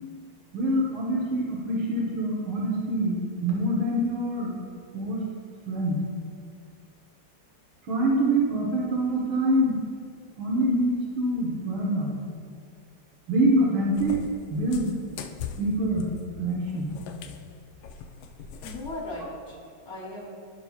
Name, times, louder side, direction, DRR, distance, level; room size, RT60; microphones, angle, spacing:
voice 1, 0.5-3.1 3.4-4.5 4.9-5.2 5.7-6.0 7.9-9.8 10.4-12.1 13.3-14.2 14.5-14.9 15.6-16.0 16.4-16.9, right 1 dB, 70° right, -4 dB, 1.9 m, -25 dB
Cat, 14.0-19.1, left 6 dB, 75° left, 1.3 m, -40 dB
voice 2, 18.6-20.3, left 1 dB, 40° left, -6 dB, 1.2 m, -38 dB
16.5 x 5.8 x 2.4 m, 2.3 s
omnidirectional pair, 2.3 m